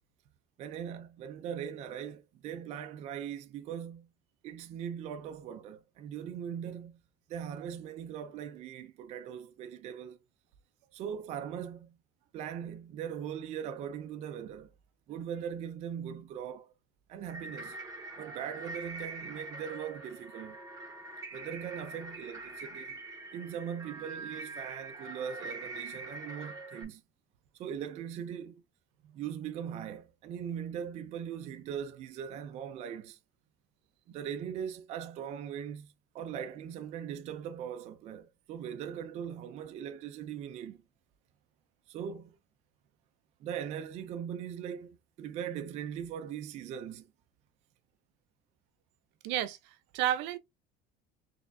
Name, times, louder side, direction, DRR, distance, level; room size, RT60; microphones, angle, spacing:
voice 1, 0.6-4.1 4.4-7.0 7.3-10.2 10.9-12.0 12.3-14.7 15.1-16.7 17.1-17.8 18.2-20.6 21.3-23.0 23.3-27.0 27.5-28.6 29.1-33.2 34.1-40.8 41.9-42.4 43.4-47.1, right 8 dB, 35° right, 0.4 m, -40 dB
sound 1, 17.2-26.8, right 3 dB, 20° right, 1.9 m, -44 dB
voice 2, 49.2-50.4, right 12 dB, 75° right, 0.7 m, -32 dB
4.4 x 3.4 x 2.6 m
cardioid pair, 175°, 18 cm